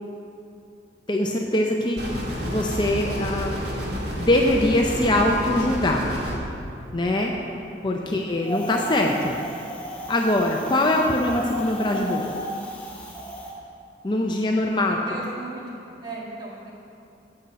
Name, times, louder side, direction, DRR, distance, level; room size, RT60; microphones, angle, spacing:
voice 1, 1.1-2.0 2.4-3.6 3.9-6.1 6.9-7.3 7.8-9.4 10.1-12.4 14.0-15.0, left 1 dB, 25° left, 1 dB, 0.5 m, -22 dB
sound 1, 2.0-6.4, equal, 75° right, 1.8 m, -30 dB
Wind, 8.4-13.5, equal, 10° left, 1.1 m, -34 dB
voice 2, 15.1-16.7, right 2 dB, 25° right, -5 dB, 2.0 m, -37 dB
8.8 x 7.6 x 5.7 m, 2.6 s
head